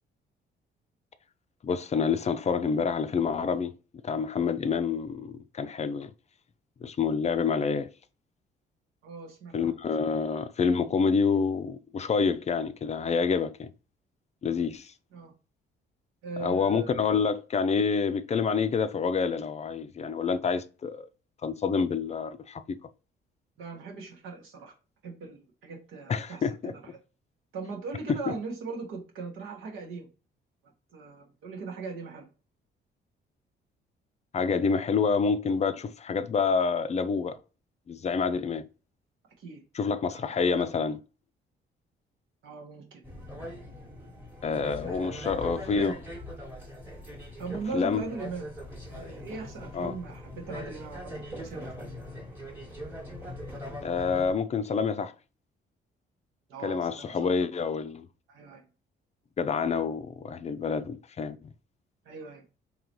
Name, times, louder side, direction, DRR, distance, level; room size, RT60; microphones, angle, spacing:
voice 1, 1.6-3.7 4.0-6.1 6.8-7.9 9.5-13.7 14.4-14.9 16.4-21.1 21.4-22.8 26.1-26.7 28.1-28.2 34.3-37.4 37.9-38.7 39.7-41.0 44.4-45.9 47.7-48.0 49.7-50.0 53.8-55.1 56.6-58.1 59.4-61.5, left 5 dB, 35° left, 0.4 m, -27 dB
voice 2, 9.0-9.8 15.1-15.3 16.2-17.3 23.6-24.7 25.0-26.7 27.5-30.1 30.9-32.3 39.4-39.6 40.1-40.8 42.4-43.0 44.8-46.0 47.4-48.5 48.9-51.6 56.5-57.3 58.3-58.6 62.0-62.4, right 4 dB, 90° right, 1.2 m, -40 dB
sound 1, 43.0-54.3, left 1 dB, 10° right, 1.1 m, -41 dB
3.8 x 2.9 x 2.9 m
cardioid pair, 90°, 20 cm